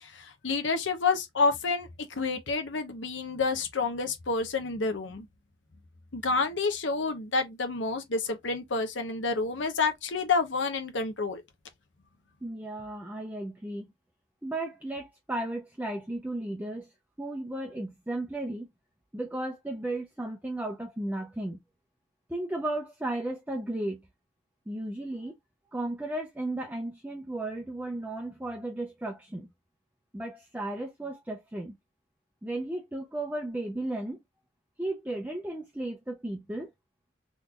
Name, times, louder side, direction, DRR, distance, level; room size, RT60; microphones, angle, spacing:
voice 1, 0.0-5.3 6.1-11.4, left 4 dB, 70° left, 0.8 m, -29 dB
voice 2, 12.4-13.9 14.4-16.9 17.2-18.7 19.1-21.6 22.3-24.1 24.7-25.3 25.7-29.5 30.1-31.8 32.4-34.2 34.8-36.7, right 1 dB, 10° right, 0.5 m, -34 dB
3.8 x 3.1 x 2.2 m
head